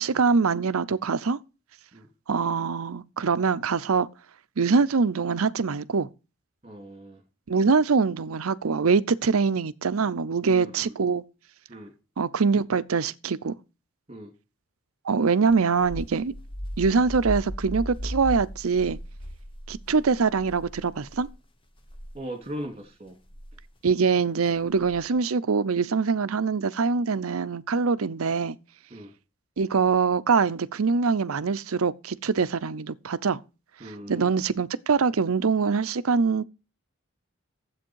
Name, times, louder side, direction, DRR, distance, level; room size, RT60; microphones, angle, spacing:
voice 1, 0.0-1.4 2.3-4.1 4.6-6.1 7.5-11.2 12.2-13.5 15.0-16.3 16.8-19.0 19.7-21.3 23.8-28.6 29.6-33.4 34.1-36.4, right 5 dB, 85° right, 0.6 m, -24 dB
voice 2, 6.6-7.2 10.4-10.9 11.7-11.9 14.1-14.3 22.1-23.2 28.9-29.1 33.8-34.3, equal, 30° right, 2.7 m, -39 dB
sound 1, 15.5-21.4 21.8-22.1 23.3-23.6 24.8-25.2, equal, 25° left, 1.0 m, -37 dB
10.5 x 7.9 x 4.6 m
head